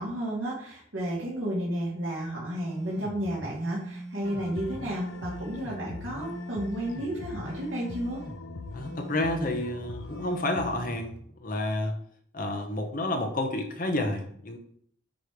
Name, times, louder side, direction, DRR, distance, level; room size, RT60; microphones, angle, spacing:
voice 1, 0.0-8.2, right 1 dB, 80° right, -6 dB, 2.3 m, -32 dB
sound 1, 2.6-11.2, right 1 dB, 60° right, 1.9 m, -42 dB
sound 2, 4.2-10.8, left 4 dB, 85° left, 0.5 m, -43 dB
voice 2, 8.7-11.1 11.4-12.0 12.3-14.6, left 1 dB, 45° left, 4 dB, 1.0 m, -30 dB
9.1 x 3.2 x 5.2 m, 0.63 s
head